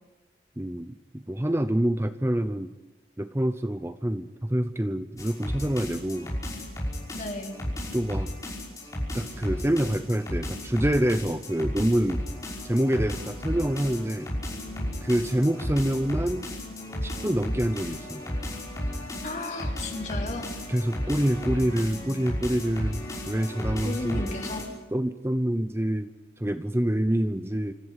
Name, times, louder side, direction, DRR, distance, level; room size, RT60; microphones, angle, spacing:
voice 1, 0.6-2.7 3.2-6.3 7.9-8.3 9.1-12.2 12.6-14.3 15.0-16.5 17.0-18.2 20.7-23.0 23.3-24.2 24.9-26.1 26.4-27.7, right 1 dB, 15° right, 10 dB, 0.7 m, -26 dB
sound 1, 5.2-24.6, left 1 dB, 20° left, 5.9 m, -34 dB
voice 2, 7.1-7.5 19.2-20.5 23.8-24.7, left 1 dB, 40° left, 2 dB, 3.3 m, -34 dB
26.5 x 14.5 x 9.9 m, 1.0 s
head